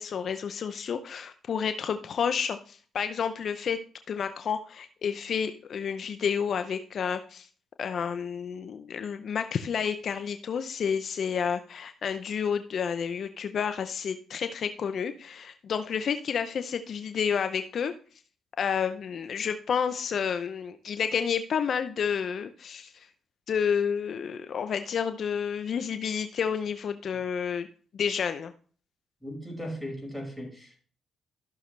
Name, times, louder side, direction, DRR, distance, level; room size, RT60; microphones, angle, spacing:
voice 1, 0.0-3.8 4.1-7.5 7.8-17.9 18.6-23.1 23.5-27.7 27.9-28.5, left 7 dB, 60° left, 9 dB, 0.7 m, -30 dB
voice 2, 29.2-30.8, equal, ahead, 0 dB, 5.6 m, -37 dB
14.0 x 6.4 x 3.3 m, 0.42 s
supercardioid pair, 55°, 0 cm